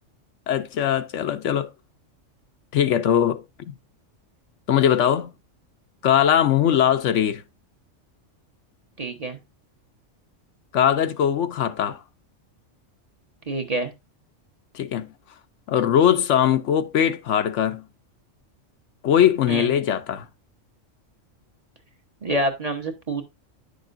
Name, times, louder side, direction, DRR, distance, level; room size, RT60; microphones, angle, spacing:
voice 1, 0.5-1.7 2.7-3.4 4.7-5.3 6.0-7.4 10.7-12.0 14.7-15.1 15.7-17.9 19.0-20.3, left 9 dB, 75° left, 1.0 m, -20 dB
voice 2, 9.0-9.4 13.5-13.9 19.5-19.7 22.2-23.2, right 1 dB, 35° right, 1.1 m, -27 dB
9.9 x 6.6 x 2.6 m
omnidirectional pair, 1.3 m